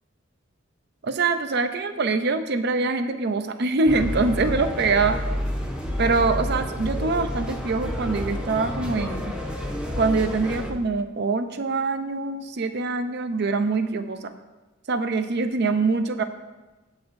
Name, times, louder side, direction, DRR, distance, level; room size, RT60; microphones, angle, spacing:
voice 1, 1.0-5.2 6.0-9.3 10.0-14.3 14.9-16.2, right 3 dB, 55° right, 9 dB, 0.6 m, -24 dB
sound 1, 3.9-10.7, equal, 5° right, 1.0 m, -29 dB
15.5 x 6.9 x 2.6 m, 1.2 s
head